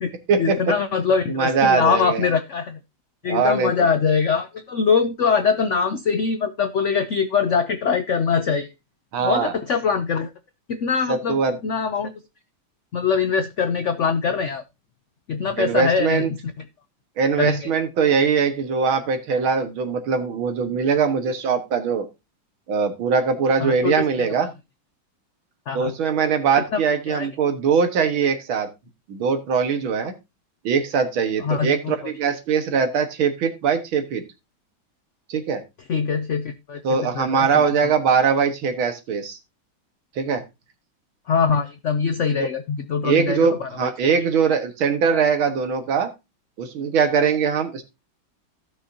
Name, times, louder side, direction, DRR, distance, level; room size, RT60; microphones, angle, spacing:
voice 1, 0.4-2.8 3.2-8.7 9.2-10.3 10.7-11.4 11.6-12.1 12.9-14.6 15.3-16.4 17.4-17.7 23.6-24.3 25.7-25.9 26.7-26.8 27.1-27.3 31.4-31.9 35.9-37.6 41.3-44.1, left 6 dB, 80° left, 9 dB, 0.6 m, -23 dB
voice 2, 1.3-2.3 3.3-3.7 9.1-9.5 11.1-11.6 15.6-16.3 17.2-22.1 22.7-24.5 25.7-28.7 29.1-30.1 30.6-34.2 35.3-35.6 36.8-39.4 40.2-40.4 42.4-42.5 43.0-46.1 46.6-47.8, right 6 dB, 85° right, 7 dB, 2.2 m, -21 dB
15.5 x 6.2 x 2.7 m, 0.24 s
omnidirectional pair, 2.2 m